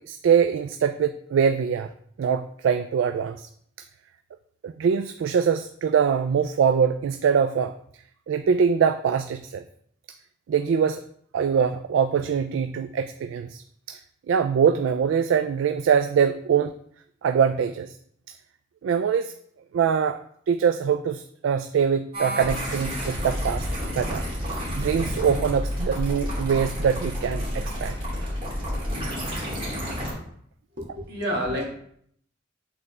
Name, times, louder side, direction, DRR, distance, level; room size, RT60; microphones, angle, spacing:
voice 1, 0.0-1.9 2.2-3.5 4.6-7.7 8.3-9.6 10.5-11.0 11.3-14.0 14.3-16.7 17.2-18.0 18.8-19.3 19.7-20.2 20.5-23.7 23.9-24.3 24.7-28.0, right 7 dB, 75° right, 8 dB, 0.3 m, -23 dB
sound 1, 22.1-30.1, equal, 30° right, 2.5 m, -30 dB
voice 2, 30.8-31.7, equal, 60° right, -2 dB, 1.9 m, -28 dB
7.9 x 4.0 x 3.2 m, 0.66 s
head